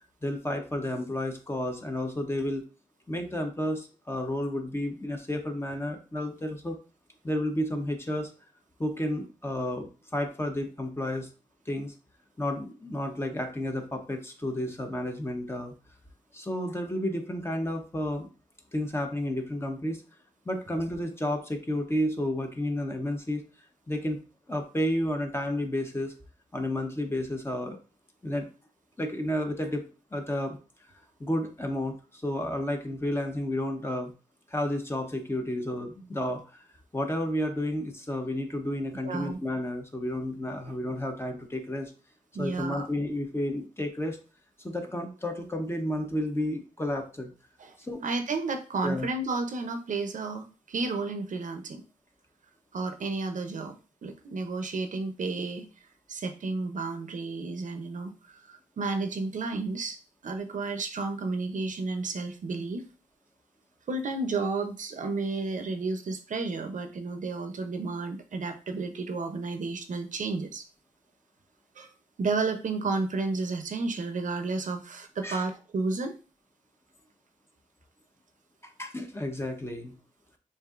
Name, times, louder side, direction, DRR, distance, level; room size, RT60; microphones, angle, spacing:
voice 1, 0.2-2.6 3.1-6.8 7.2-8.3 8.8-11.3 11.7-11.9 12.4-15.7 16.3-18.3 18.7-20.0 20.5-23.4 23.9-24.2 24.5-26.1 26.5-27.8 28.2-28.5 29.0-29.8 30.1-30.6 31.2-34.1 34.5-36.6 36.9-41.9 42.4-44.2 44.6-47.3 47.8-48.0 48.8-49.1 75.2-75.4 78.8-79.9, left 1 dB, 20° left, 4 dB, 0.8 m, -31 dB
voice 2, 39.0-39.4 42.3-42.9 47.6-47.7 48.0-51.8 52.7-53.8 54.0-55.7 56.1-60.0 60.2-62.9 63.9-70.6 71.8-71.9 72.2-76.1 79.4-79.5, right 3 dB, 65° right, 7 dB, 0.6 m, -32 dB
6.7 x 2.6 x 2.4 m, 0.34 s
wide cardioid pair, 95°, 14 cm